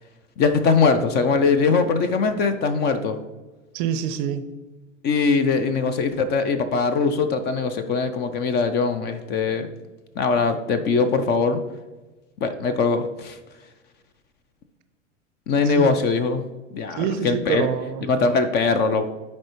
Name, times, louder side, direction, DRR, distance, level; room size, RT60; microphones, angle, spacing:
voice 1, 0.4-3.2 5.0-9.7 10.2-11.6 12.4-13.4 15.5-16.5 16.7-17.7 18.1-19.1, left 4 dB, 25° left, 10 dB, 0.5 m, -21 dB
voice 2, 3.7-4.5 15.6-15.9 17.0-18.4, right 8 dB, 40° right, 11 dB, 0.6 m, -27 dB
10.5 x 4.3 x 3.0 m, 1.2 s
figure-of-eight pair, 90°, 38 cm